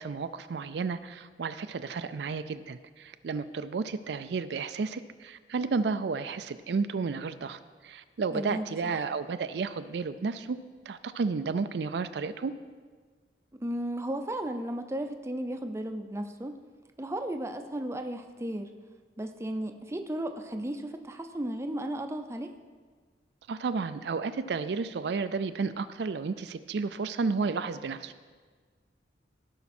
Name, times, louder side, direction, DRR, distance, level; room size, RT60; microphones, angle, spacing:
voice 1, 0.0-10.6 10.9-12.5 23.5-28.2, right 4 dB, 70° right, 11 dB, 0.4 m, -32 dB
voice 2, 8.3-8.7 13.5-16.5 17.0-18.7 19.2-22.5, right 1 dB, 15° right, 6 dB, 0.6 m, -34 dB
16.0 x 5.8 x 4.3 m, 1.5 s
head